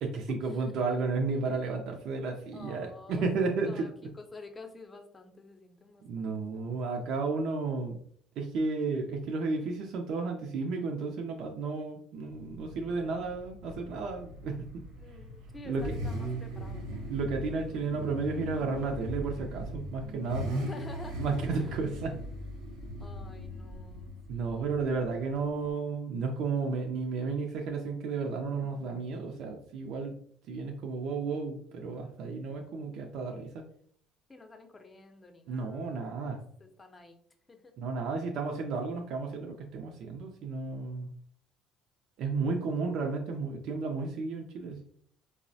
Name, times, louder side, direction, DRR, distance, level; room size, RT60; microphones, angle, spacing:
voice 1, 0.0-4.1 6.0-8.0 8.4-14.7 15.6-16.0 17.1-20.5 21.2-22.2 24.3-30.2 30.5-33.6 35.5-36.4 37.8-41.1 42.2-44.8, right 4 dB, 70° right, 2 dB, 0.4 m, -33 dB
voice 2, 2.5-6.8 12.9-13.3 15.0-16.9 20.6-21.8 23.0-24.8 34.3-37.2 37.5-37.7, left 3 dB, 25° left, 6 dB, 0.6 m, -50 dB
sound 1, 12.3-20.1, left 1 dB, 80° left, 0.4 m, -49 dB
Car / Idling / Accelerating revving vroom, 13.6-25.7, equal, 85° right, 0.8 m, -39 dB
3.9 x 2.0 x 2.6 m, 0.62 s
supercardioid pair, 75°, 0 cm